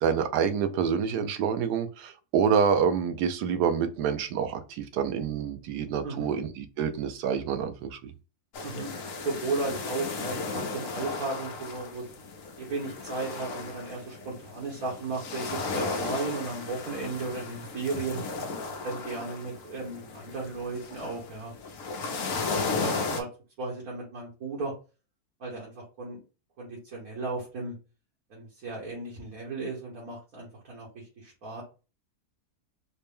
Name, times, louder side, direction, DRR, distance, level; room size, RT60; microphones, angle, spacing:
voice 1, 0.0-8.0, right 7 dB, 80° right, 1.2 m, -27 dB
sound 1, 8.5-23.2, left 4 dB, 60° left, 1.1 m, -35 dB
voice 2, 8.6-12.0 12.6-18.2 18.8-21.5 22.5-23.3 23.6-24.7 25.4-26.2 26.6-27.7 28.3-31.6, right 3 dB, 60° right, 1.7 m, -35 dB
4.2 x 2.2 x 3.4 m
omnidirectional pair, 1.7 m